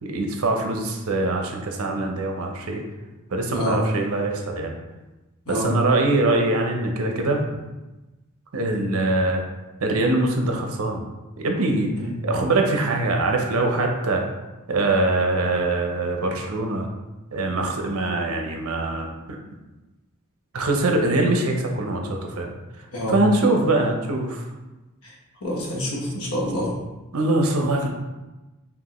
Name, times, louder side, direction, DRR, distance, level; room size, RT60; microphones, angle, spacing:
voice 1, 0.0-2.8 3.3-4.8 5.5-7.4 8.5-9.4 9.8-11.0 11.4-11.9 12.2-14.2 14.7-16.9 17.3-19.4 20.5-22.5 23.1-24.4 27.1-27.9, right 2 dB, 85° right, 3 dB, 0.7 m, -23 dB
voice 2, 22.9-23.2 25.0-25.1 25.4-26.7, equal, 90° left, -3 dB, 1.2 m, -27 dB
5.3 x 2.6 x 3.0 m, 1.1 s
head